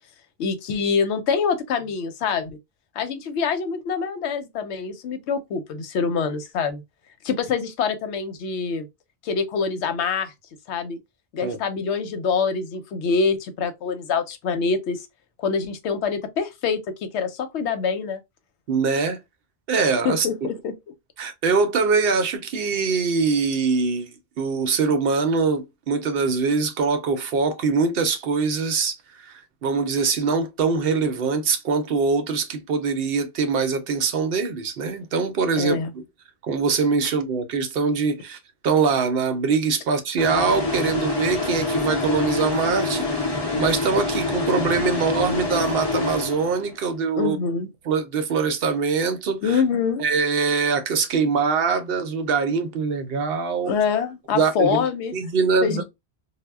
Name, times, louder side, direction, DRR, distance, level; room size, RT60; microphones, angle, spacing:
voice 1, 0.4-2.6 3.0-6.8 7.2-8.9 9.2-10.3 10.7-11.0 11.3-15.0 15.4-18.2 20.0-20.7 35.6-35.9 47.2-47.7 49.4-50.0 53.6-55.1 55.6-55.8, left 5 dB, 85° left, 0.9 m, -25 dB
voice 2, 18.7-19.2 19.7-20.3 21.2-36.0 36.4-38.4 38.6-47.4 47.9-49.6 50.0-53.7 54.3-54.9 55.1-55.8, right 5 dB, 65° right, 0.7 m, -23 dB
sound 1, 40.2-46.8, left 3 dB, 30° left, 0.5 m, -26 dB
2.1 x 2.1 x 3.3 m
omnidirectional pair, 1.1 m